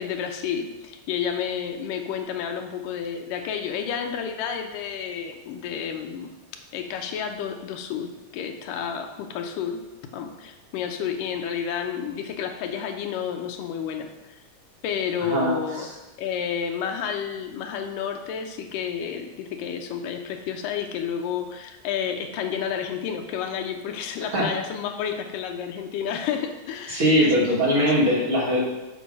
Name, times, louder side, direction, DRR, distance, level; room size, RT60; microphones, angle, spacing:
voice 1, 0.0-6.3 6.7-9.8 10.1-14.1 14.8-15.9 16.2-27.9, left 7 dB, 85° left, 4 dB, 2.4 m, -30 dB
voice 2, 15.2-15.5 24.3-24.5 26.9-28.7, equal, 40° right, -5 dB, 2.5 m, -21 dB
7.5 x 6.1 x 5.4 m, 1.0 s
omnidirectional pair, 3.8 m